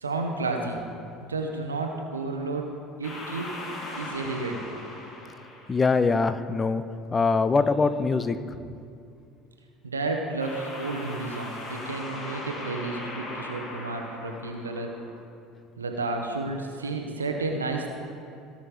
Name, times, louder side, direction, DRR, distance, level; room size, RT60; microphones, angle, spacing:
voice 1, 0.0-0.8 1.3-2.7 3.0-3.5 4.0-4.6 9.8-14.9 15.8-17.9, right 3 dB, 80° right, 2 dB, 0.9 m, -31 dB
sound 1, 3.0-6.4 10.4-15.2, left 2 dB, 40° left, 1.6 m, -39 dB
voice 2, 5.7-6.8 7.1-8.4, left 4 dB, 20° left, 12 dB, 0.5 m, -23 dB
17.0 x 5.7 x 4.9 m, 2.4 s
figure-of-eight pair, 65°, 0 cm